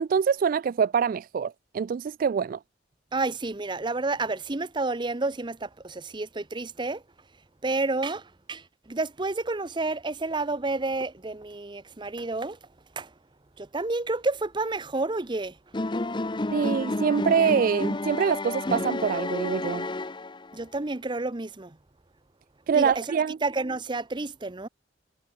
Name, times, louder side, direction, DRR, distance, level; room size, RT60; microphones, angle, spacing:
voice 1, 0.0-2.6 16.5-19.9 22.7-23.4, right 6 dB, 50° right, 0.3 m, -25 dB
voice 2, 3.1-7.0 7.6-12.6 13.0-13.1 13.6-15.6 20.5-21.8 22.7-23.1 23.4-24.7, right 3 dB, 25° right, 0.8 m, -30 dB
sound 1, 15.7-20.6, left 2 dB, 25° left, 0.8 m, -30 dB
head